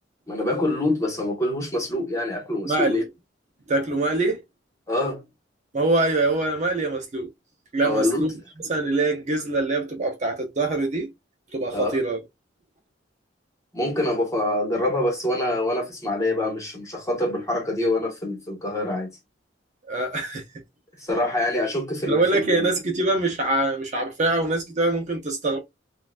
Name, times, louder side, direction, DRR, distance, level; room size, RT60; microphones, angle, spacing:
voice 1, 0.3-3.0 4.9-5.2 7.8-8.3 11.7-12.0 13.7-19.1 21.0-22.7, left 1 dB, 15° left, 1.3 m, -25 dB
voice 2, 2.6-3.1 3.7-4.4 5.7-7.3 7.7-8.3 8.7-11.1 11.5-12.2 19.9-20.4 22.1-25.6, right 2 dB, 40° right, 0.7 m, -24 dB
3.7 x 2.4 x 2.4 m
head